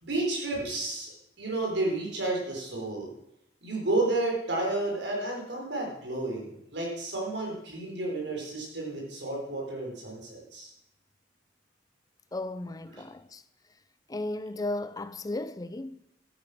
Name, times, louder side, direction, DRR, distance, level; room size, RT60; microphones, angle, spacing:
voice 1, 0.0-3.1 3.6-10.7 12.9-13.0, right 2 dB, 80° right, 5.0 m, -31 dB
voice 2, 12.3-13.4 14.1-16.0, left 2 dB, 20° left, 0.5 m, -35 dB
12.0 x 9.6 x 6.5 m
head